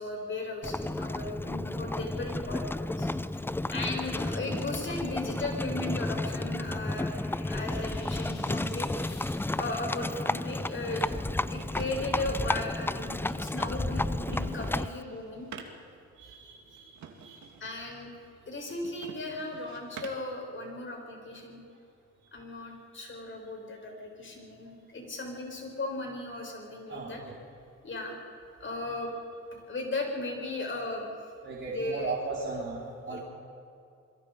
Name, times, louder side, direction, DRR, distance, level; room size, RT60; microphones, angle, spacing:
voice 1, 0.0-3.1 3.7-7.2 7.5-8.9 9.6-11.1 11.5-15.5 17.6-18.1 18.5-21.6 22.3-27.2 27.8-28.2 28.6-29.1 29.5-31.1 31.6-32.1 33.1-33.2, left 2 dB, 40° left, 1 dB, 7.4 m, -36 dB
Livestock farm animals working animals, 0.6-15.0, left 2 dB, 5° left, 0.5 m, -32 dB
sound 1, 6.3-10.0, left 4 dB, 60° left, 7.0 m, -52 dB
sound 2, 11.3-20.4, right 6 dB, 65° right, 2.8 m, -50 dB
voice 2, 16.1-17.5 26.9-27.3 31.4-33.2, right 3 dB, 35° right, -5 dB, 4.5 m, -37 dB
27.5 x 22.5 x 5.3 m, 2.4 s
cardioid pair, 80°, 32 cm